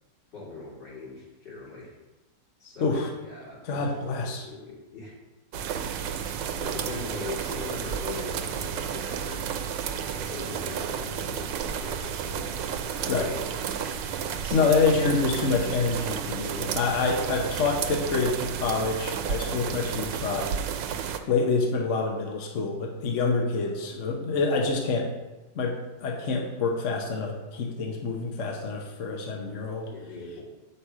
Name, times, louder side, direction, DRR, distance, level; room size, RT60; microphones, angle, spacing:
voice 1, 0.3-1.9 2.6-5.1 5.7-6.1 6.5-9.5 10.1-13.9 14.4-14.7 29.9-30.4, left 3 dB, 75° left, -7 dB, 3.4 m, -41 dB
voice 2, 2.8-3.1 3.6-4.5 13.1-13.3 14.5-20.5 21.3-25.1 25.5-29.9, left 4 dB, 50° left, 1 dB, 1.1 m, -27 dB
sound 1, 5.5-21.2, right 8 dB, 90° right, 1.3 m, -32 dB
7.7 x 5.6 x 4.8 m, 1.1 s
omnidirectional pair, 1.9 m